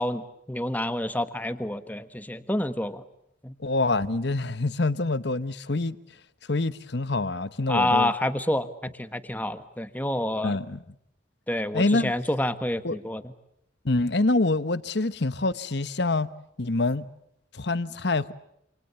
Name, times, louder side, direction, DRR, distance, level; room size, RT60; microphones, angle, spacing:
voice 1, 0.0-3.0 3.4-3.5 7.7-10.5 11.5-13.3, left 1 dB, 10° left, 1.5 m, -28 dB
voice 2, 3.6-6.0 6.5-8.1 10.4-10.8 11.7-12.1 12.8-13.0 13.8-16.3 16.6-17.1 17.5-18.3, left 2 dB, 60° left, 1.1 m, -26 dB
28.0 x 27.5 x 7.0 m
head